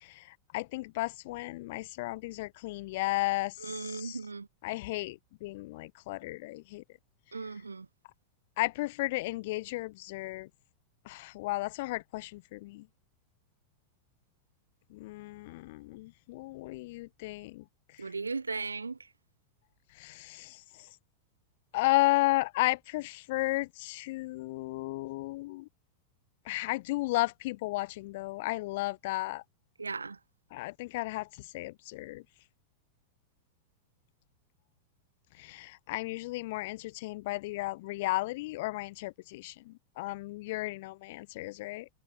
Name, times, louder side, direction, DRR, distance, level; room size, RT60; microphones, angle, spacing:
voice 1, 0.0-4.2 4.6-6.8 8.6-10.5 11.1-12.9 14.9-17.6 20.0-20.9 21.7-25.7 26.5-29.4 30.5-32.2 35.4-41.9, left 20 dB, 50° left, 0.3 m, -34 dB
voice 2, 3.6-4.5 7.3-7.9 18.0-19.0 29.8-30.2, right 4 dB, 80° right, 0.9 m, -37 dB
figure-of-eight pair, 90°, 0 cm